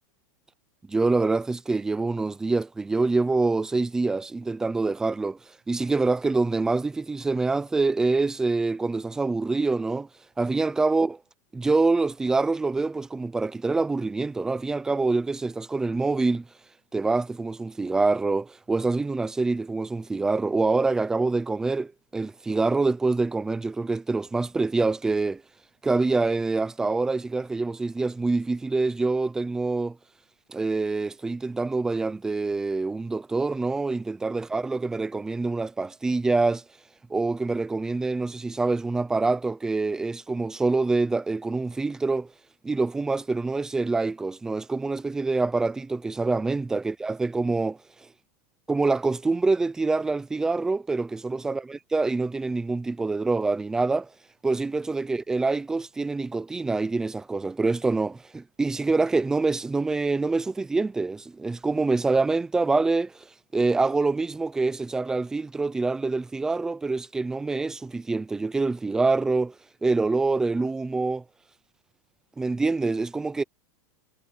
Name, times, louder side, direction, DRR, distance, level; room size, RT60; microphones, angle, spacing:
voice 1, 0.9-5.4 5.7-10.1 10.4-11.2 11.5-16.4 16.9-25.4 25.8-30.0 30.5-36.6 37.1-42.3 42.6-47.8 48.7-54.1 54.4-63.3 63.5-69.6 69.8-71.2 72.4-73.4, right 3 dB, 5° right, 0.6 m, -25 dB
supercardioid pair, 180°, 10 cm